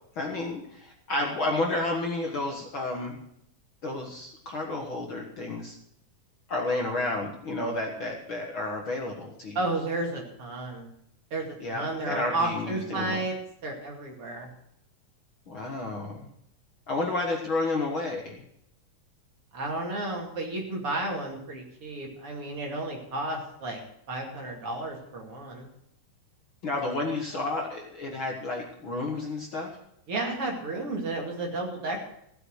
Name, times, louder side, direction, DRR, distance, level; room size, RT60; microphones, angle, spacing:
voice 1, 0.2-3.2 3.8-5.8 6.5-9.6 11.6-13.2 15.5-16.3 16.9-18.4 26.6-29.8, left 2 dB, 50° left, 0 dB, 1.9 m, -31 dB
voice 2, 9.5-10.9 11.3-13.3 13.6-14.5 19.5-23.8 24.1-25.7 30.1-32.1, right 2 dB, 45° right, -1 dB, 3.2 m, -32 dB
16.0 x 8.2 x 6.5 m, 0.74 s
omnidirectional pair, 3.7 m